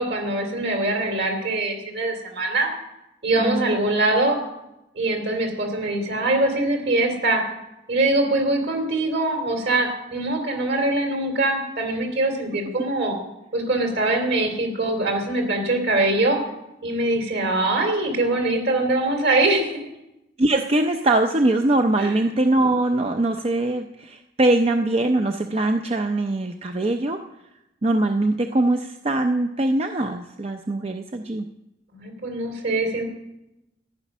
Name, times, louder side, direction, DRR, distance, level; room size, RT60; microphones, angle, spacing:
voice 1, 0.0-2.7 3.2-4.4 4.9-7.4 7.9-13.2 13.5-16.4 16.8-19.9 22.0-22.2 31.9-33.0, right 2 dB, 65° right, 3 dB, 3.2 m, -23 dB
voice 2, 3.4-3.8 20.4-27.2 27.8-31.4, right 2 dB, 35° right, 5 dB, 0.6 m, -22 dB
14.0 x 9.8 x 6.2 m, 0.91 s
head